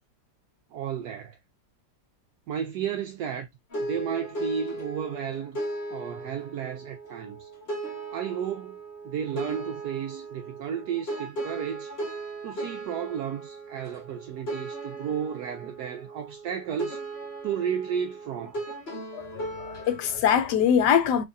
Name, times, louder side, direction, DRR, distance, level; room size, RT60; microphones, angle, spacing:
voice 1, 0.7-1.4 2.5-3.5 3.8-5.6 5.9-7.5 8.1-8.8 9.0-11.9 12.4-17.0 17.4-18.6, right 8 dB, 75° right, 1.1 m, -33 dB
sound 1, 3.7-20.2, right 2 dB, 40° left, 1.8 m, -37 dB
voice 2, 19.1-21.3, left 8 dB, 80° left, 1.2 m, -23 dB
3.4 x 3.1 x 2.6 m
omnidirectional pair, 1.8 m